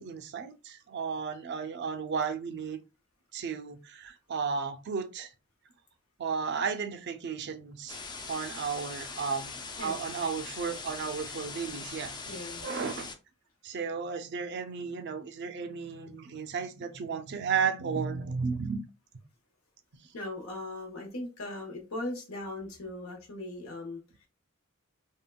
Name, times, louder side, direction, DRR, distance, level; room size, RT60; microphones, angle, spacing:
voice 1, 0.0-2.8 3.3-5.3 6.2-8.0 8.2-13.1 13.6-18.8, right 5 dB, 55° right, 9 dB, 0.4 m, -34 dB
sound 1, 7.9-13.1, left 4 dB, 20° left, 0.4 m, -41 dB
voice 2, 9.8-10.2 12.3-12.7 20.1-24.3, left 2 dB, 85° left, 1 dB, 1.0 m, -39 dB
3.5 x 2.1 x 2.2 m, 0.29 s
head